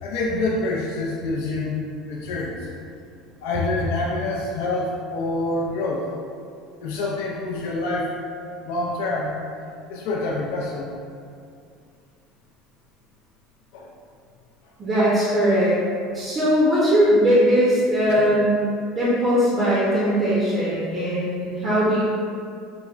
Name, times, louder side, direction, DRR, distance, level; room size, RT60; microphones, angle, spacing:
voice 1, 0.0-2.7 3.4-6.0 6.8-8.1 8.6-9.4 9.9-10.9 13.7-13.9 18.2-18.3, left 2 dB, 80° left, -4 dB, 0.4 m, -26 dB
voice 2, 14.8-15.8 16.1-18.7 19.0-22.0, equal, 25° right, -8 dB, 0.6 m, -20 dB
4.7 x 2.1 x 2.3 m, 2.4 s
cardioid pair, 160°, 0 cm